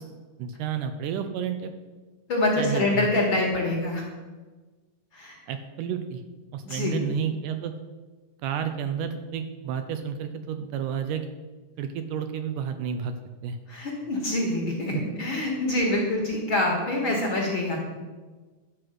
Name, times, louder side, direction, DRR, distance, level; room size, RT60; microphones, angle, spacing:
voice 1, 0.4-1.7 2.6-3.1 5.5-6.2 6.5-7.7 8.4-11.3 11.8-13.1 13.4-13.6, right 8 dB, 80° right, 8 dB, 2.0 m, -31 dB
voice 2, 2.3-4.0 5.1-5.4 6.6-7.1 13.7-17.8, left 2 dB, 50° left, -2 dB, 1.7 m, -26 dB
10.5 x 4.7 x 7.8 m, 1.3 s
omnidirectional pair, 3.9 m